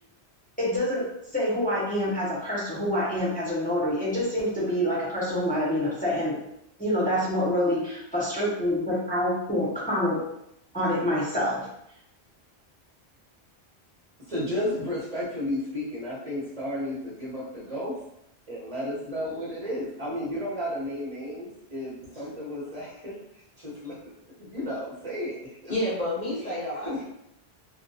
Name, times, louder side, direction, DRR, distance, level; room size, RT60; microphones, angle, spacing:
voice 1, 0.6-1.0 1.3-6.4 6.8-10.2 10.7-11.7, left 1 dB, 10° left, -8 dB, 0.6 m, -26 dB
voice 2, 14.3-18.0 18.5-23.2 23.6-24.0 24.4-25.8 26.9-27.0, left 1 dB, 40° right, -8 dB, 0.8 m, -33 dB
voice 3, 25.7-27.0, left 1 dB, 50° left, -6 dB, 0.7 m, -30 dB
2.3 x 2.2 x 2.6 m, 0.79 s
omnidirectional pair, 1.1 m